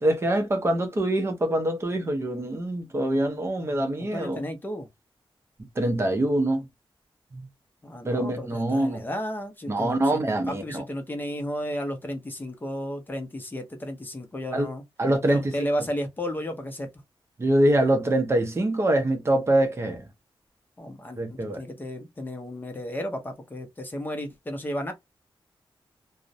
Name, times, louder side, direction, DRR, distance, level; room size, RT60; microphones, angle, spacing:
voice 1, 0.0-4.4 5.8-6.6 7.3-7.4 8.1-9.0 9.7-10.8 14.5-14.7 15.0-15.7 17.4-20.0 21.2-21.6, right 1 dB, 30° right, 0.6 m, -24 dB
voice 2, 4.0-4.9 7.8-10.2 10.5-14.8 15.3-16.9 20.8-24.9, equal, 20° left, 0.6 m, -33 dB
2.4 x 2.0 x 2.6 m
wide cardioid pair, 170°, 9 cm